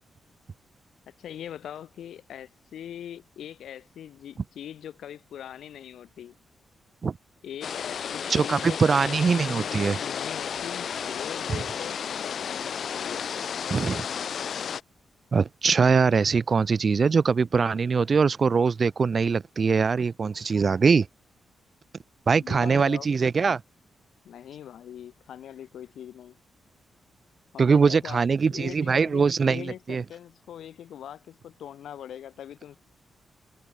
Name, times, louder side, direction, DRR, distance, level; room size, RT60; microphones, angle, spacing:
voice 1, 1.1-6.4 7.4-8.8 9.7-13.3 22.4-23.1 24.2-26.4 27.5-28.2 28.5-32.8, left 10 dB, 80° left, 2.6 m, -41 dB
sound 1, 7.6-14.8, left 7 dB, 55° left, 0.8 m, -32 dB
voice 2, 8.3-10.0 11.5-11.6 13.7-14.0 15.3-21.1 22.3-23.6 27.6-30.0, right 5 dB, 35° right, 0.7 m, -22 dB
wide cardioid pair, 150°, 0 cm